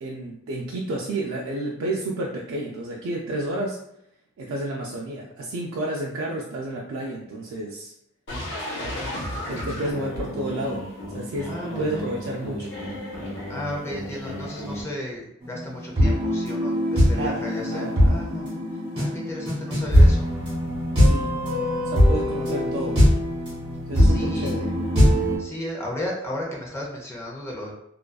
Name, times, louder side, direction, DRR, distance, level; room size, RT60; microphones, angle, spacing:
voice 1, 0.0-3.8 4.4-7.9 9.5-12.8 17.1-18.2 21.0-21.4 21.9-23.0 23.9-24.7, right 1 dB, 90° right, -2 dB, 0.4 m, -31 dB
sound 1, 8.3-14.8, equal, 60° left, 0.9 m, -34 dB
voice 2, 9.8-10.2 11.4-12.1 13.5-18.5 19.0-20.3 23.9-24.7 25.4-27.7, left 1 dB, 15° left, -2 dB, 0.6 m, -34 dB
sound 2, 15.4-25.4, equal, 25° right, 1.2 m, -21 dB
2.4 x 2.3 x 2.2 m, 0.74 s
head